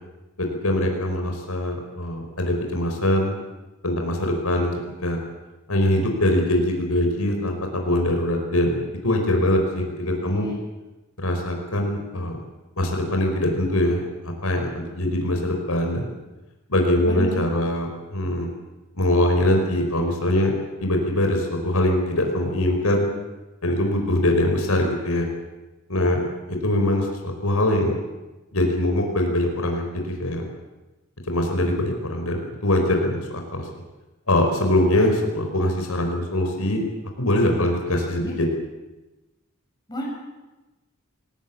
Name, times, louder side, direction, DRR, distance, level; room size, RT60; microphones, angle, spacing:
voice 1, 0.4-3.4 3.8-4.7 5.0-5.2 5.7-8.8 9.0-10.5 11.2-12.4 12.8-16.1 16.7-18.5 18.9-20.5 20.8-23.1 23.6-25.2 25.9-28.0 28.5-30.4 31.3-33.7 34.3-36.8 37.2-38.5, left 1 dB, 85° left, 3 dB, 4.9 m, -22 dB
voice 2, 10.2-10.6 17.0-17.3 38.2-38.3 39.9-40.1, equal, 20° left, -2 dB, 7.0 m, -31 dB
22.0 x 19.0 x 8.6 m, 1.1 s
head